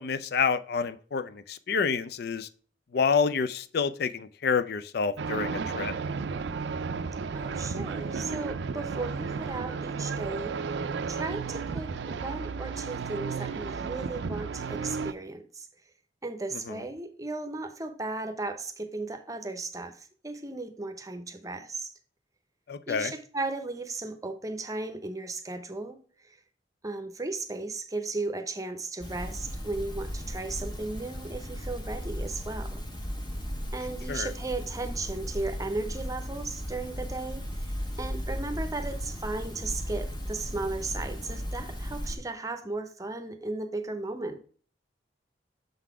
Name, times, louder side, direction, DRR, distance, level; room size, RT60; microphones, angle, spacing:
voice 1, 0.0-2.5 2.9-5.9 16.7-16.8 22.7-23.1 34.1-34.3, left 5 dB, 60° left, 12 dB, 0.5 m, -28 dB
sound 1, 5.2-15.1, right 5 dB, 70° right, 0.4 m, -33 dB
voice 2, 7.3-10.6 11.1-15.7 16.2-21.9 22.9-26.4 26.8-32.8 33.7-44.4, right 3 dB, 20° right, 8 dB, 0.7 m, -36 dB
sound 2, 29.0-42.2, equal, 25° left, 1.4 m, -36 dB
6.8 x 4.0 x 4.7 m, 0.43 s
head